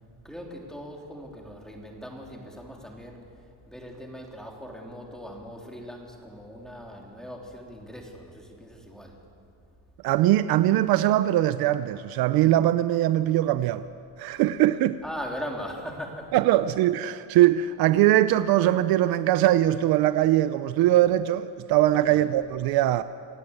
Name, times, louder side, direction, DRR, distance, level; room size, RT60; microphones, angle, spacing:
voice 1, 0.2-9.2 15.0-16.4 22.1-22.2, equal, ahead, 3.3 m, -40 dB
voice 2, 10.0-13.8 14.2-15.0 16.3-23.0, right 13 dB, 60° right, 0.7 m, -21 dB
27.5 x 17.5 x 8.1 m
cardioid pair, 150°, 41 cm